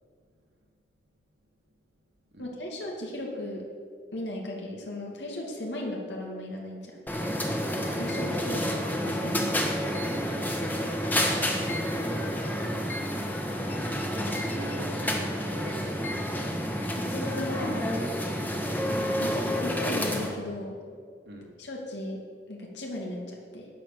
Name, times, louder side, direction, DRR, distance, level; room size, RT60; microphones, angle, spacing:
voice 1, 2.4-3.7 4.1-7.0 8.0-8.8 9.0-9.5 17.0-17.9 19.2-20.8 21.6-22.2 22.5-23.7, left 1 dB, 80° left, -1 dB, 2.4 m, -36 dB
sound 1, 7.1-20.3, equal, 10° left, 1.3 m, -29 dB
voice 2, 8.4-8.8 14.1-16.3 21.2-21.5, right 1 dB, 80° right, 0 dB, 2.8 m, -43 dB
12.5 x 9.3 x 6.8 m, 2.1 s
head